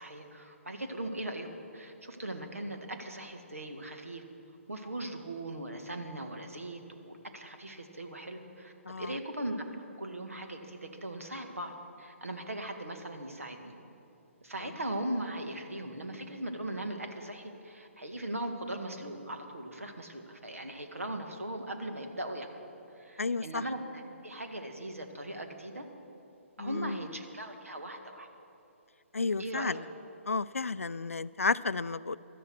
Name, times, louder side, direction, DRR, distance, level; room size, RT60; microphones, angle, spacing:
voice 1, 0.0-1.5 1.7-4.2 4.7-9.6 10.0-13.7 14.4-22.5 23.0-25.8 26.6-28.3 29.4-29.8, right 1 dB, 75° right, 5 dB, 1.7 m, -39 dB
voice 2, 8.9-9.2 23.2-23.6 26.6-27.0 29.1-29.8 30.3-32.2, left 4 dB, 75° left, 17 dB, 0.4 m, -32 dB
17.0 x 12.5 x 4.7 m, 2.7 s
figure-of-eight pair, 130°, 8 cm